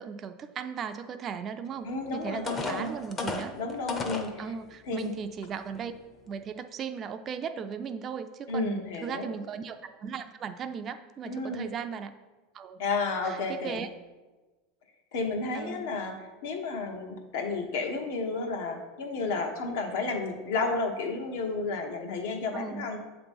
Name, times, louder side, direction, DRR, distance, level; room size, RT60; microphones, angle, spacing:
voice 1, 0.0-3.5 4.4-5.9 6.3-12.1 12.5-12.8 13.2-13.9 15.5-16.0 22.5-22.9, right 6 dB, 30° right, 9 dB, 0.3 m, -37 dB
voice 2, 1.8-2.9 3.6-4.4 4.9-5.1 8.5-9.3 11.2-11.7 12.8-13.8 15.1-16.1 16.4-23.0, left 3 dB, 70° left, 3 dB, 1.0 m, -32 dB
sound 1, 1.9-2.0 2.5-4.3 5.0-5.1 5.6-5.8, left 4 dB, 20° left, 0.6 m, -33 dB
7.3 x 3.0 x 5.2 m, 1.2 s
supercardioid pair, 145°, 0 cm